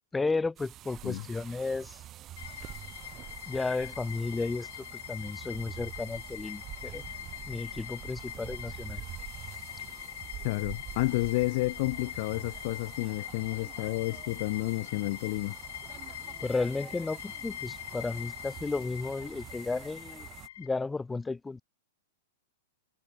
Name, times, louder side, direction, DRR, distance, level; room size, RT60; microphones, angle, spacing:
voice 1, 0.1-2.0 3.4-7.1 7.5-9.0 16.4-20.3 20.6-21.6, left 3 dB, 10° left, 1.5 m, -33 dB
sound 1, 0.6-20.5, right 13 dB, 30° right, 3.6 m, -47 dB
sound 2, 2.4-20.7, left 12 dB, 70° left, 1.8 m, -43 dB
voice 2, 10.4-15.6, left 23 dB, 50° left, 1.1 m, -31 dB
hypercardioid pair, 135°, 0 cm